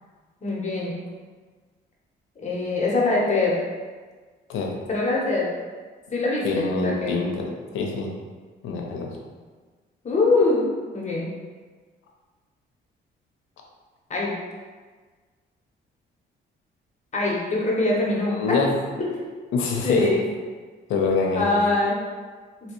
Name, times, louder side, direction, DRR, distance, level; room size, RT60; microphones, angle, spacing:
voice 1, 0.4-1.0 2.4-3.6 4.9-5.5 6.1-7.4 10.0-10.7 10.9-11.3 14.1-14.3 17.1-18.6 19.8-20.2 21.3-22.0, left 3 dB, 35° left, -4 dB, 1.0 m, -23 dB
voice 2, 6.4-8.1 8.6-9.1 18.3-18.8 19.5-20.1 20.9-21.6, left 4 dB, 85° left, 0 dB, 0.6 m, -25 dB
3.2 x 2.8 x 3.0 m, 1.4 s
cardioid pair, 90°, 20 cm